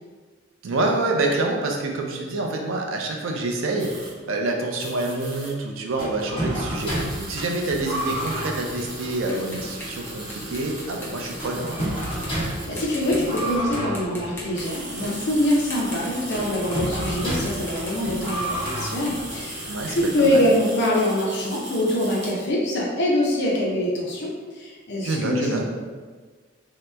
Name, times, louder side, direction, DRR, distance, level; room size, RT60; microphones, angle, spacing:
voice 1, 0.6-11.8 19.6-20.5 25.0-25.6, right 2 dB, 75° right, 1 dB, 0.5 m, -27 dB
sound 1, 3.8-4.1 4.8-5.5 6.7-13.6 14.3-22.3, right 1 dB, 35° right, 0.7 m, -39 dB
sound 2, 6.0-20.7, right 1 dB, 30° left, 1.4 m, -32 dB
sound 3, 7.7-11.7 12.0-12.5 12.8-13.4 13.7-16.8 17.1-20.1, left 1 dB, 10° left, 0.6 m, -42 dB
voice 2, 12.3-25.7, left 1 dB, 60° left, -3 dB, 0.5 m, -24 dB
2.8 x 2.1 x 3.3 m, 1.5 s
head